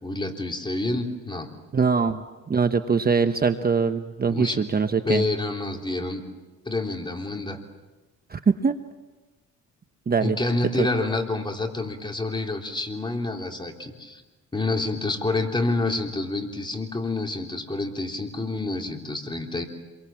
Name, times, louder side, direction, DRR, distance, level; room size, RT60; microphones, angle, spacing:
voice 1, 0.0-1.5 4.3-4.6 5.1-6.2 6.7-7.6 10.2-14.2 14.5-19.7, left 2 dB, 15° left, 2 dB, 3.5 m, -28 dB
voice 2, 1.7-2.2 2.5-5.2 8.3-8.7 10.1-10.4 10.8-10.9, right 5 dB, 30° right, 8 dB, 1.1 m, -22 dB
27.5 x 23.0 x 7.4 m, 1.2 s
cardioid pair, 90°, 30 cm